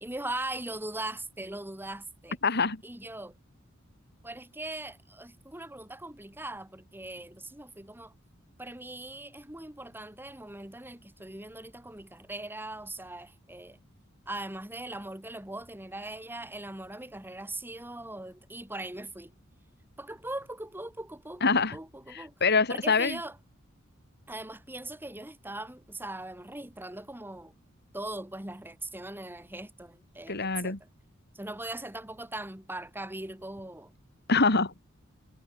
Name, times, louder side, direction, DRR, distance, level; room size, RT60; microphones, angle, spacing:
voice 1, 0.0-2.4 2.8-3.3 4.2-8.1 8.6-13.8 14.3-19.3 20.0-22.3 22.7-23.4 24.3-27.5 27.9-30.8 31.3-33.9, right 2 dB, 10° right, 2.7 m, -40 dB
voice 2, 2.4-2.8 21.4-21.8 22.1-23.2 30.3-30.8 34.3-34.7, left 4 dB, 55° left, 3.1 m, -25 dB
head